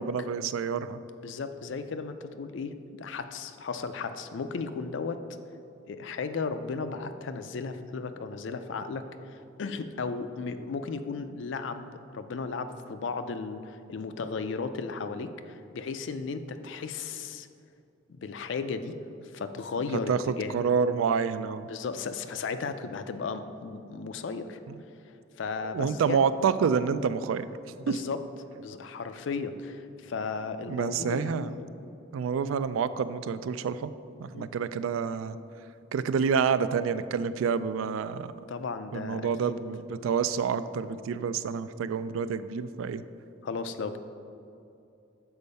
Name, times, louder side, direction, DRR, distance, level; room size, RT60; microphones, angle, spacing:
voice 1, 0.0-1.0 20.1-21.7 24.7-24.8 25.6-27.5 27.9-28.0 30.7-31.5 32.1-33.9 34.2-35.4 35.9-38.3 38.9-43.0, right 6 dB, 85° right, 14 dB, 0.3 m, -28 dB
voice 2, 1.2-5.2 5.9-17.5 18.1-18.9 19.3-20.5 21.7-24.6 25.3-26.2 27.8-28.2 28.5-32.0 34.3-34.5 38.5-39.6 43.4-44.0, left 4 dB, 70° left, 10 dB, 0.4 m, -35 dB
6.9 x 4.5 x 5.3 m, 2.6 s
head